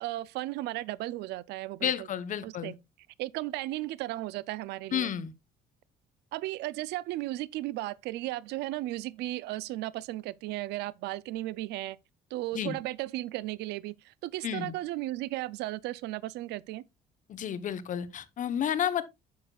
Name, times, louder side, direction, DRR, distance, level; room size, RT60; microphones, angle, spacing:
voice 1, 0.0-2.1 2.4-2.7 3.2-5.1 6.3-12.0 12.3-16.8, right 17 dB, 80° right, 0.4 m, -35 dB
voice 2, 1.8-2.7 4.9-5.3 12.5-12.8 14.4-14.7 17.3-19.0, left 9 dB, 50° left, 0.8 m, -31 dB
9.3 x 6.8 x 2.3 m
cardioid pair, 110°, 17 cm